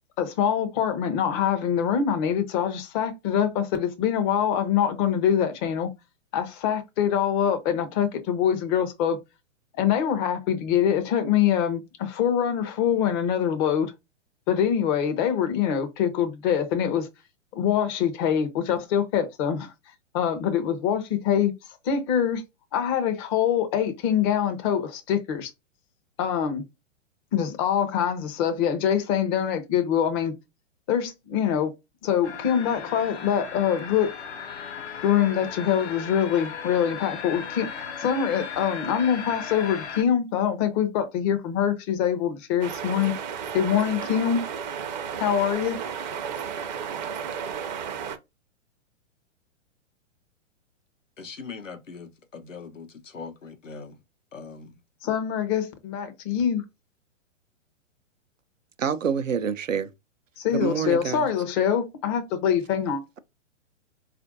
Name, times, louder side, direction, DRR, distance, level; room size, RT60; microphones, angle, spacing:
voice 1, 0.2-5.9 6.3-9.2 9.8-13.9 14.5-17.1 17.6-19.7 20.1-21.5 21.8-22.4 22.7-25.5 26.2-26.6 27.3-30.3 30.9-31.7 32.0-34.1 35.0-37.7 38.0-43.1 43.5-44.5 45.2-45.8 55.0-56.6 60.4-63.0, left 8 dB, 20° left, 0.5 m, -24 dB
sound 1, 32.2-40.0, left 6 dB, 60° left, 0.8 m, -36 dB
sound 2, 42.6-48.2, right 7 dB, 35° right, 0.5 m, -33 dB
voice 2, 51.2-54.0 54.3-54.8, left 5 dB, 90° left, 0.7 m, -41 dB
voice 3, 58.8-59.9 60.5-61.2, right 7 dB, 85° right, 0.5 m, -26 dB
4.3 x 2.5 x 2.6 m
figure-of-eight pair, 115°, 38 cm